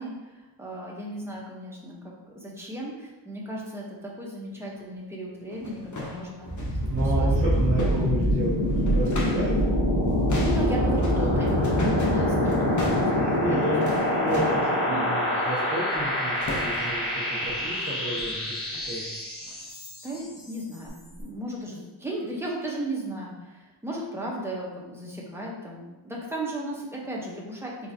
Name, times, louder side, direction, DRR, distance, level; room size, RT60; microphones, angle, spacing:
voice 1, 0.0-6.5 7.2-7.3 7.8-7.9 10.4-13.6 13.8-13.9 14.2-14.6 14.9-15.1 20.0-27.9, right 1 dB, 5° right, -4 dB, 0.8 m, -35 dB
sound 1, 4.8-4.9 5.4-9.6 9.9-14.7 15.9-16.1 16.4-17.1 17.4-17.7 18.2-18.4 18.7-18.9 19.4-19.6 20.1-20.2 20.9-21.0, left 2 dB, 45° left, 0.7 m, -36 dB
sound 2, 6.4-20.3, left 1 dB, 90° left, 1.3 m, -25 dB
voice 2, 6.9-9.6 13.1-13.8 14.2-19.2, right 1 dB, 30° right, -10 dB, 1.2 m, -31 dB
3.9 x 3.8 x 2.7 m, 1.1 s
wide cardioid pair, 95°, 43 cm